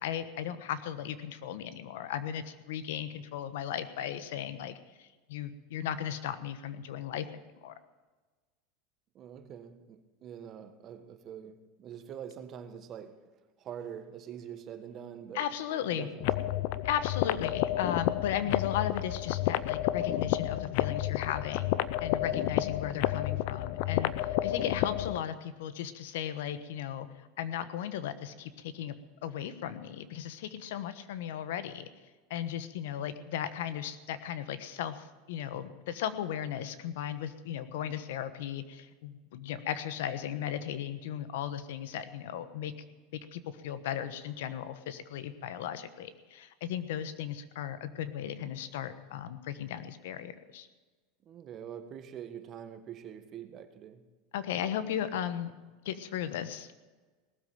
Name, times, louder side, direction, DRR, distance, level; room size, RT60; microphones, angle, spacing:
voice 1, 0.0-7.3 7.6-7.7 15.3-16.1 16.8-21.7 22.0-29.0 29.2-31.9 32.3-42.7 43.3-50.7 54.3-55.5 55.8-56.7, left 10 dB, 80° left, 12 dB, 1.2 m, -36 dB
voice 2, 9.1-13.3 13.6-15.5 15.9-16.7 51.2-54.1, right 9 dB, 35° right, 9 dB, 1.5 m, -45 dB
sound 1, 16.2-25.2, left 14 dB, 60° left, 0.6 m, -30 dB
18.5 x 7.8 x 9.2 m, 1.3 s
supercardioid pair, 130°, 0 cm